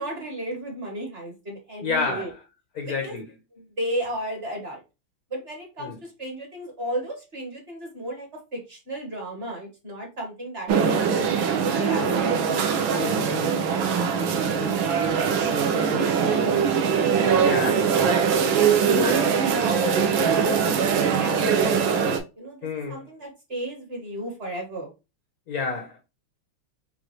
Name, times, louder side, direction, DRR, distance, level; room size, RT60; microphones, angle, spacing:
voice 1, 0.0-2.3 2.9-3.2 3.5-4.8 5.3-12.4 12.9-13.0 13.3-13.5 13.8-15.2 15.7-16.5 17.0-17.7 18.5-21.8 22.4-22.6 22.9-24.9, right 1 dB, 35° right, 1.3 m, -34 dB
voice 2, 1.8-2.2 2.8-3.2 12.9-13.5 17.4-17.8 22.6-23.0 25.5-26.0, left 4 dB, 75° left, 0.8 m, -29 dB
sound 1, 10.7-22.2, right 6 dB, 70° right, 1.4 m, -22 dB
5.3 x 2.5 x 3.0 m
omnidirectional pair, 2.4 m